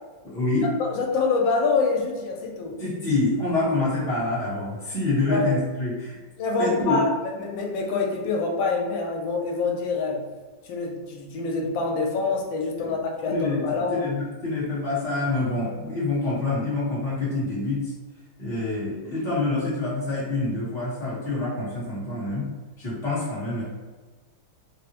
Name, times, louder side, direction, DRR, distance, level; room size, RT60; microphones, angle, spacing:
voice 1, 0.2-0.7 2.8-6.2 6.6-7.0 12.8-12.9 13.2-17.9 18.4-22.5 22.8-23.6, left 2 dB, ahead, -9 dB, 0.6 m, -26 dB
voice 2, 0.8-2.8 5.3-5.5 6.4-7.1 7.3-10.2 10.6-14.1, left 4 dB, 80° left, 0 dB, 1.3 m, -26 dB
3.5 x 2.1 x 2.9 m, 1.4 s
omnidirectional pair, 2.1 m